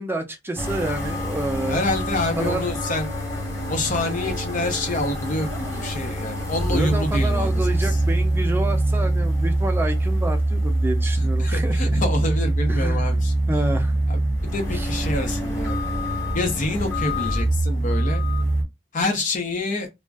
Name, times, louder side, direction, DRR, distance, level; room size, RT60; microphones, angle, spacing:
voice 1, 0.0-1.8 2.4-2.7 6.7-11.8 12.7-13.1 13.5-13.9 14.7-14.9, right 1 dB, 10° right, 0.5 m, -28 dB
sound 1, 0.6-18.6, right 1 dB, 15° left, 1.1 m, -24 dB
voice 2, 1.7-3.1 3.7-8.0 11.2-13.3 14.1-15.8 16.3-18.2 18.9-19.9, left 2 dB, 45° left, 0.6 m, -27 dB
2.4 x 2.1 x 3.4 m
head